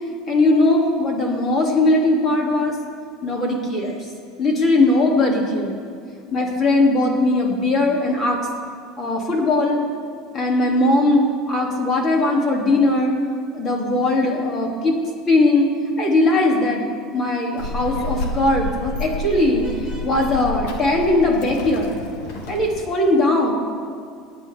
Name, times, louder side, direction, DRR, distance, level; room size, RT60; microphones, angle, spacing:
voice 1, 0.3-2.8 3.2-4.1 4.4-5.7 6.3-8.5 9.0-9.8 10.3-13.2 13.5-15.0 15.3-15.7 16.0-16.9 17.1-21.9 22.5-23.5, left 2 dB, 30° left, -1 dB, 2.6 m, -19 dB
Child speech kid speaking, 17.6-22.8, left 1 dB, 80° left, 1.5 m, -30 dB
26.5 x 9.4 x 3.5 m, 2.2 s
supercardioid pair, 145°, 0 cm